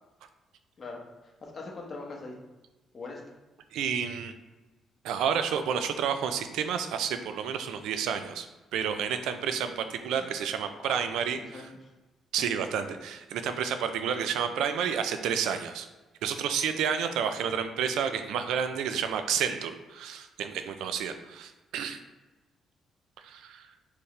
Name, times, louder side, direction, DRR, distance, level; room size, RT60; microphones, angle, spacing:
voice 1, 0.8-2.4 2.9-3.2 10.1-10.3 10.9-11.0 11.4-11.8 14.4-14.5, left 3 dB, 40° left, -1 dB, 1.1 m, -42 dB
voice 2, 3.7-4.3 5.0-8.5 8.7-11.7 12.3-15.9 16.2-22.0 23.2-23.7, right 7 dB, 85° right, 8 dB, 0.4 m, -30 dB
4.5 x 3.4 x 3.2 m, 1.1 s
cardioid pair, 90°, 0 cm